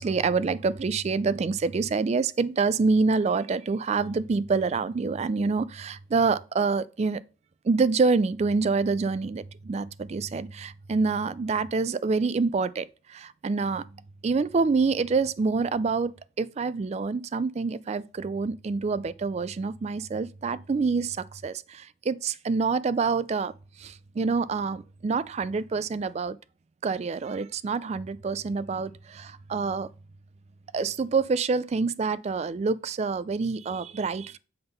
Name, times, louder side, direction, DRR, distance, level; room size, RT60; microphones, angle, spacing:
voice 1, 0.0-7.2 7.6-13.9 14.2-23.5 23.8-26.4 26.8-29.9 30.7-34.4, right 4 dB, 35° right, 0.3 m, -27 dB
7.9 x 3.6 x 5.4 m
head